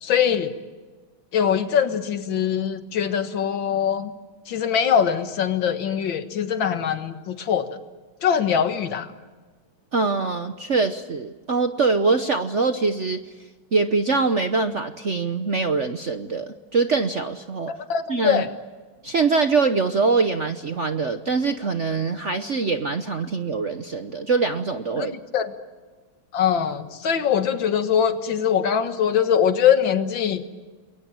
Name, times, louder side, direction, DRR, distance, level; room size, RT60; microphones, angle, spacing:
voice 1, 0.0-0.5 1.3-4.1 4.5-7.7 8.2-9.1 17.7-18.5 25.0-25.1 25.3-25.5 26.3-30.5, left 8 dB, 65° left, 9 dB, 2.2 m, -22 dB
voice 2, 9.9-13.3 13.7-17.7 18.1-18.5 19.0-25.1, right 4 dB, 45° right, 8 dB, 1.0 m, -23 dB
29.5 x 22.0 x 8.9 m, 1.3 s
omnidirectional pair, 2.3 m